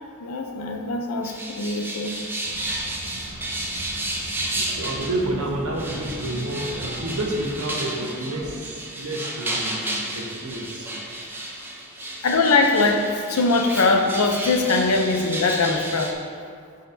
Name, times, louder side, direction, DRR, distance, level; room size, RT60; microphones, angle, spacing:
voice 1, 0.2-2.1 12.2-16.2, left 3 dB, 80° left, 3 dB, 0.7 m, -21 dB
sound 1, 1.2-5.3 5.8-16.1, right 1 dB, 10° right, 0.6 m, -32 dB
sound 2, 2.4-7.6, right 1 dB, 45° right, 0.8 m, -40 dB
voice 2, 4.4-11.3, right 1 dB, 90° right, -1 dB, 1.1 m, -30 dB
10.5 x 4.1 x 2.7 m, 2.1 s
head